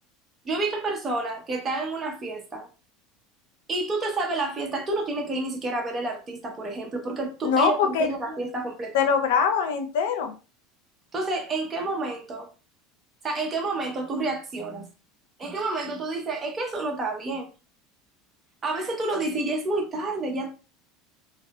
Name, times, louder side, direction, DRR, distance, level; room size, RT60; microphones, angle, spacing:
voice 1, 0.4-2.7 3.7-9.0 11.1-12.5 13.2-14.9 15.4-17.5 18.6-20.6, right 2 dB, 25° right, 0.7 m, -29 dB
voice 2, 7.4-8.1 8.9-10.3, left 6 dB, 85° left, 0.6 m, -22 dB
2.6 x 2.5 x 2.3 m
supercardioid pair, 140°, 0 cm